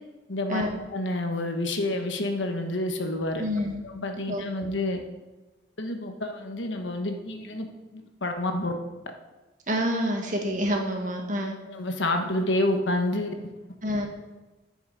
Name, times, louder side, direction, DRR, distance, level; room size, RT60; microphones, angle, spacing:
voice 1, 0.3-0.6 0.9-3.4 3.8-5.0 5.8-7.7 8.2-8.7 11.7-13.3, left 1 dB, 85° left, 5 dB, 1.2 m, -28 dB
voice 2, 3.4-3.8 4.3-4.4 9.7-11.5 13.8-14.1, equal, 45° right, 2 dB, 1.6 m, -27 dB
10.5 x 6.2 x 4.9 m, 1.1 s
head